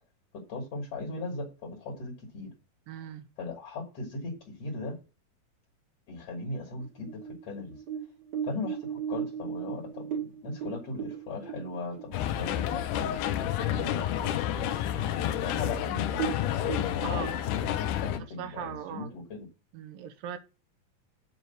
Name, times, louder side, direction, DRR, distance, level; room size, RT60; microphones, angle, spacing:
voice 1, 0.3-2.5 3.4-5.0 6.1-7.8 8.4-13.2 13.7-14.4 15.1-17.3 17.6-19.5, left 3 dB, 55° left, 2.1 m, -38 dB
voice 2, 2.9-3.3 13.6-13.9 17.0-17.3 18.4-19.2 19.7-20.4, right 9 dB, 75° right, 2.4 m, -39 dB
sound 1, 6.8-12.6 13.0-13.1 13.5-14.0 14.4-14.5 15.2-15.3 15.6-15.7 16.1-17.3, right 8 dB, 45° right, 1.4 m, -36 dB
sound 2, 12.1-18.2, left 11 dB, 80° left, 1.9 m, -30 dB
7.7 x 4.6 x 6.6 m
omnidirectional pair, 4.2 m